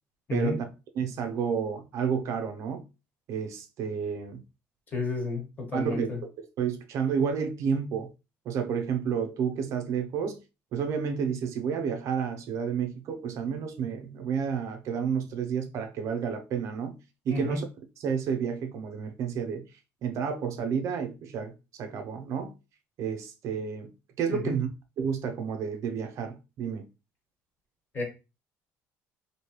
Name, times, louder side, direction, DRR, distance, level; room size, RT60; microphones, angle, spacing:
voice 1, 0.3-0.7 0.9-2.8 3.3-4.4 5.7-8.1 8.5-10.4 10.7-17.0 17.3-17.7 18.0-19.6 20.0-22.5 23.0-23.9 24.2-24.7 25.0-26.9, right 6 dB, 55° right, 0.6 m, -30 dB
voice 2, 4.9-6.2 17.3-17.6 24.3-24.6 27.9-28.0, left 3 dB, 30° left, 1.3 m, -31 dB
3.1 x 2.7 x 2.9 m
cardioid pair, 130°, 6 cm